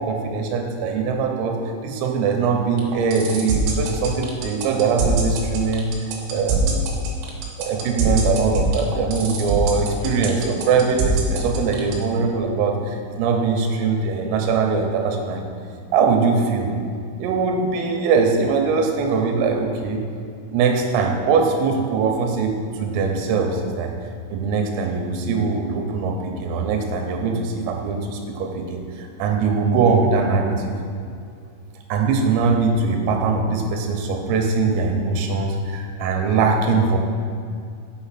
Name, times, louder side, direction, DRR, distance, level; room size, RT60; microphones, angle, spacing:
voice 1, 0.0-1.6 1.8-5.9 6.3-6.8 7.6-15.4 15.9-16.7 17.2-20.0 20.5-23.9 24.3-30.7 31.9-37.0, right 4 dB, 85° right, 2 dB, 3.6 m, -21 dB
sound 1, 2.8-11.9, right 5 dB, 70° right, 3.2 m, -24 dB
7.0 x 6.4 x 5.8 m, 2.4 s
omnidirectional pair, 5.8 m